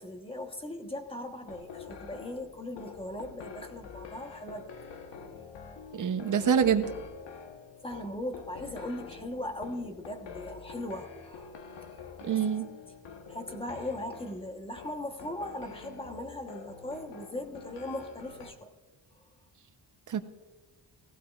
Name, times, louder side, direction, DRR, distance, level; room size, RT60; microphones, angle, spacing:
voice 1, 0.0-4.7 7.8-11.6 12.3-12.4 13.1-18.7, left 1 dB, 15° left, 4 dB, 1.1 m, -39 dB
sound 1, 1.5-18.5, left 5 dB, 75° left, 1.3 m, -46 dB
voice 2, 5.9-6.9 12.2-12.7 20.1-20.2, right 7 dB, 45° right, 9 dB, 0.8 m, -26 dB
17.5 x 15.5 x 2.4 m, 1.2 s
wide cardioid pair, 145°, 43 cm